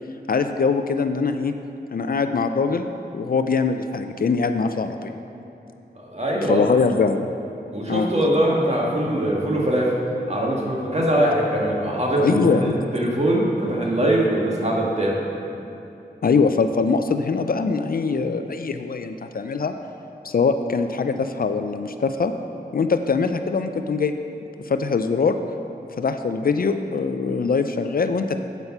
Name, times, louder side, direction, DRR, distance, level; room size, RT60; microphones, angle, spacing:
voice 1, 0.3-1.5 1.9-5.1 6.5-7.3 7.9-8.1 12.2-12.8 16.2-19.7 20.2-22.3 22.7-24.1 24.7-25.4 26.0-28.4, left 4 dB, 55° left, 8 dB, 0.4 m, -22 dB
voice 2, 6.0-6.7 7.7-9.9 10.3-15.2, right 1 dB, 40° right, -3 dB, 1.7 m, -22 dB
8.1 x 5.4 x 5.9 m, 2.9 s
cardioid pair, 50°, 17 cm